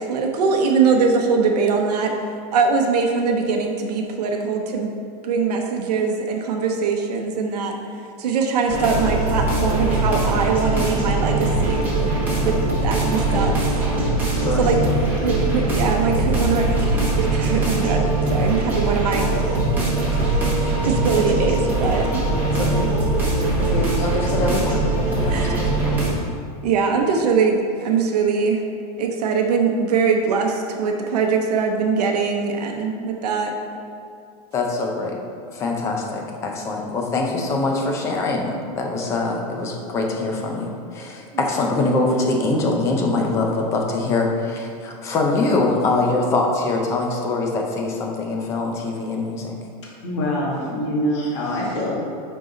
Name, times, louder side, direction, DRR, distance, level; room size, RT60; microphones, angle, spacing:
voice 1, 0.0-4.9 5.2-7.8 8.2-11.8 12.4-12.5 12.8-13.8 14.6-14.8 15.2-18.1 18.3-19.6 20.1-22.1 25.3-25.6 26.6-28.6 29.0-33.5 41.3-41.4, right 5 dB, 80° right, 2 dB, 0.8 m, -22 dB
sound 1, 8.7-26.1, right 2 dB, 10° right, 1.1 m, -21 dB
voice 2, 14.3-14.7 21.3-21.4 22.5-22.9 23.4-24.8 25.1-26.0 34.5-35.2 35.5-49.5, left 3 dB, 15° left, 1 dB, 0.5 m, -23 dB
voice 3, 49.8-52.0, equal, 45° left, -4 dB, 1.8 m, -24 dB
10.0 x 3.9 x 3.9 m, 2.4 s
supercardioid pair, 180°, 20 cm